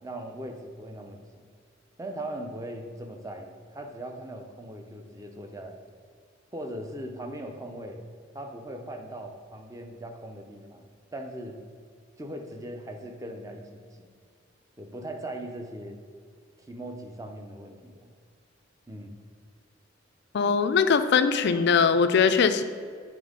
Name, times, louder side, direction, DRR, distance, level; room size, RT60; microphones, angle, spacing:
voice 1, 0.0-1.5 2.0-5.8 6.5-8.0 8.3-10.9 11.1-11.6 12.2-14.1 14.8-16.0 16.7-18.1 18.9-19.1, right 1 dB, 15° right, 3 dB, 0.6 m, -39 dB
voice 2, 20.3-22.6, left 6 dB, 55° left, 10 dB, 0.4 m, -21 dB
9.2 x 3.6 x 5.2 m, 2.1 s
head